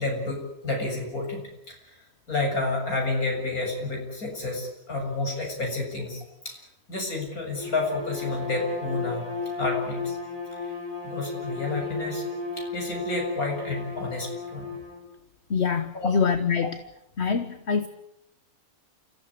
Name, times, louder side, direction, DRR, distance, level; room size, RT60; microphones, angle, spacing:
voice 1, 0.0-6.6 6.9-9.2 9.6-10.2 10.5-10.8 11.0-12.2 12.5-14.7 15.9-16.1, left 2 dB, 75° left, 8.0 m, -30 dB
Bowed string instrument, 7.6-15.1, left 4 dB, 15° left, 4.6 m, -34 dB
voice 2, 15.5-16.8 17.2-17.9, left 6 dB, 50° left, 1.4 m, -25 dB
29.0 x 15.5 x 10.0 m
omnidirectional pair, 1.5 m